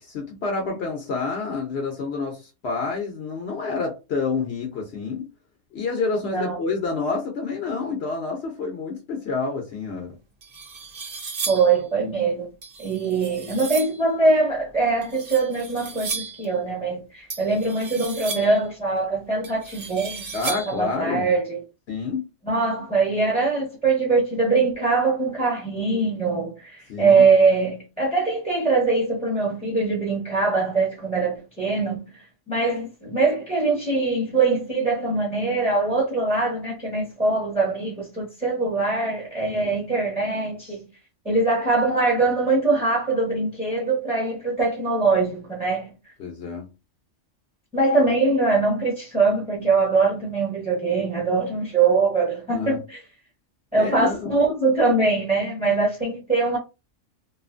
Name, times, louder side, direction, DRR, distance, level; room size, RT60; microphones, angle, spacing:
voice 1, 0.0-5.3 5.7-10.2 20.3-21.3 21.9-22.3 26.9-27.3 39.5-39.7 46.2-46.7 52.5-52.8 53.7-54.4, left 4 dB, 60° left, 0.9 m, -28 dB
voice 2, 6.2-6.6 11.5-12.5 12.8-21.6 22.4-32.1 32.5-40.8 41.2-46.1 47.7-53.0 53.7-56.6, right 3 dB, 10° right, 0.8 m, -22 dB
sound 1, 9.9-10.0 10.4-11.8 12.6-14.0 15.0-16.5 17.3-18.7 19.4-20.9, right 5 dB, 55° right, 0.4 m, -34 dB
2.6 x 2.4 x 2.5 m
omnidirectional pair, 1.3 m